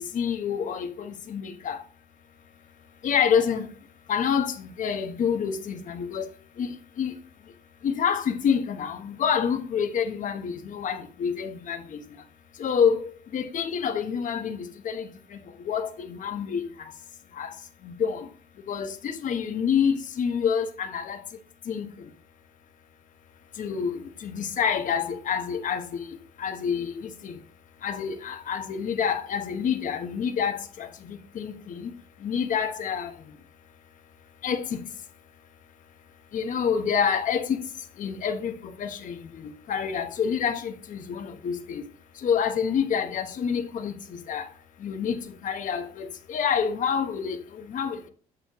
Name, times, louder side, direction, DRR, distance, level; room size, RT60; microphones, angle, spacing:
voice 1, 0.0-1.8 3.0-3.7 4.1-6.3 6.6-6.7 7.0-7.1 7.8-12.0 12.6-13.0 13.3-15.4 15.6-16.6 17.4-17.5 17.8-18.2 18.7-21.2 21.7-21.9 23.6-26.0 26.4-27.3 27.8-31.9 32.2-33.1 34.4-34.8 36.3-37.6 38.0-41.8 42.2-43.9 44.3-44.5 44.8-45.2 45.4-48.1, left 7 dB, 50° left, 1.1 m, -27 dB
7.6 x 7.0 x 3.1 m
cardioid pair, 110°, 17 cm